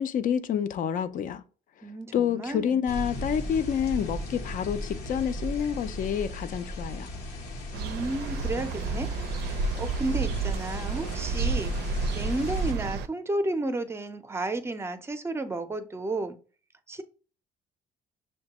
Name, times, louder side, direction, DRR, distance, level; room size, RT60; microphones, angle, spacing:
voice 1, 0.0-1.4 2.1-7.1, left 8 dB, 50° left, 0.5 m, -28 dB
voice 2, 1.8-2.8 7.7-9.1 9.4-11.7 12.1-16.4 16.9-17.0, right 2 dB, 15° right, 0.5 m, -32 dB
sound 1, 2.9-12.7, equal, 85° left, 1.0 m, -37 dB
sound 2, 7.7-13.1, right 4 dB, 80° right, 0.4 m, -30 dB
6.3 x 2.2 x 2.9 m
cardioid pair, 110°, 17 cm